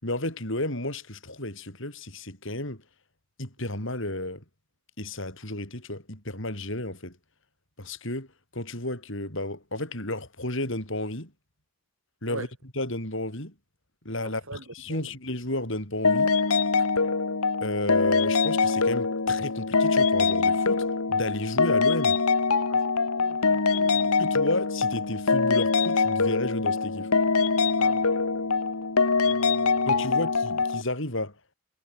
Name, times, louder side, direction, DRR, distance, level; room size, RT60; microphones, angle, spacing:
voice 1, 0.0-2.8 3.4-4.4 5.0-7.2 7.8-8.3 8.5-11.3 12.2-12.5 12.7-13.5 14.0-16.3 17.6-22.2 24.2-27.1 29.9-31.3, left 1 dB, 60° left, 7.8 m, -32 dB
voice 2, 14.2-15.2 22.7-22.8 23.2-24.2 27.8-28.1 29.2-30.2, right 2 dB, 65° right, 5.2 m, -43 dB
sound 1, 16.0-30.8, left 4 dB, 85° left, 1.6 m, -23 dB
head